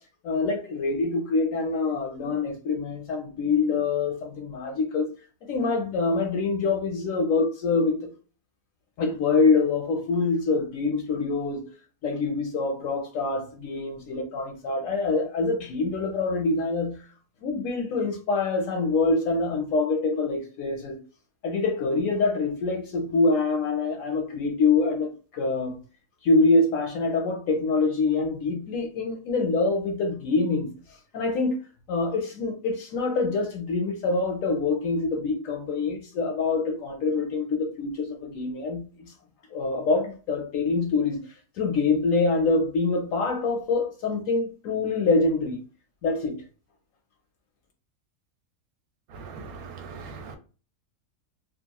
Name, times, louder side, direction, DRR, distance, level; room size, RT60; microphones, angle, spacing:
voice 1, 0.2-5.1 5.5-8.1 9.0-11.7 12.0-17.0 17.4-21.0 21.4-25.8 26.2-30.7 31.1-31.6 31.9-39.1 39.5-41.2 41.6-45.6 46.0-46.4, left 3 dB, 70° left, 0.9 m, -25 dB
voice 2, 49.1-50.4, right 4 dB, 70° right, 1.0 m, -40 dB
2.9 x 2.4 x 2.2 m
omnidirectional pair, 1.7 m